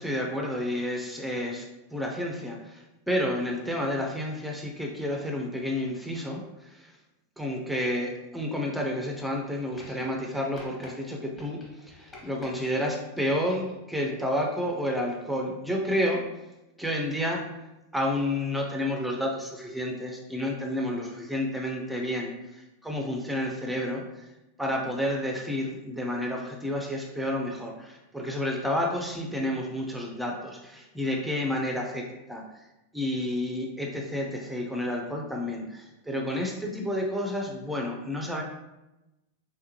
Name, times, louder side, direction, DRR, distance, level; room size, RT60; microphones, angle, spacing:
voice 1, 0.0-7.0 7.4-16.2 16.8-17.4 17.9-24.3 24.6-32.4 32.9-38.4, left 1 dB, ahead, 0 dB, 0.5 m, -30 dB
sound 1, 9.7-10.3 10.6-10.9 11.4-12.7 13.2-13.8 14.8-14.9, left 2 dB, 20° left, 1.4 m, -49 dB
3.5 x 3.2 x 2.8 m, 0.98 s
figure-of-eight pair, 90°, 0 cm